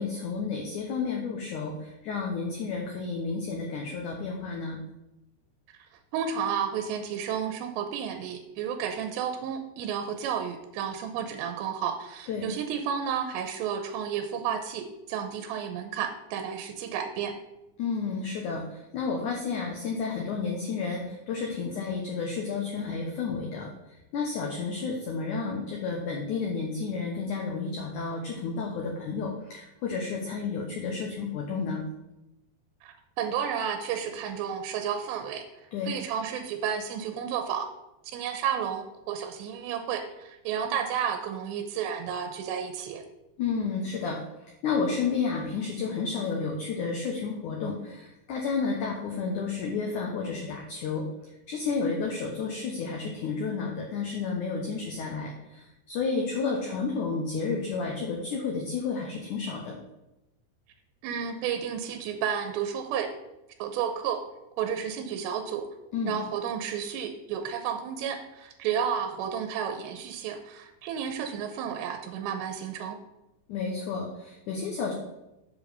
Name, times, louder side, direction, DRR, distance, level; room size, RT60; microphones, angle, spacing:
voice 1, 0.0-4.8 12.3-12.5 17.8-31.8 35.7-35.9 43.4-44.2 44.6-51.1 51.5-59.8 65.9-66.1 73.5-74.9, left 5 dB, 80° left, 1 dB, 1.7 m, -31 dB
voice 2, 6.1-17.3 32.8-35.5 35.9-37.7 38.1-43.0 61.0-63.1 63.6-64.2 64.6-65.7 66.1-73.0, right 8 dB, 90° right, 7 dB, 2.9 m, -32 dB
7.2 x 4.9 x 6.7 m, 0.94 s
omnidirectional pair, 4.9 m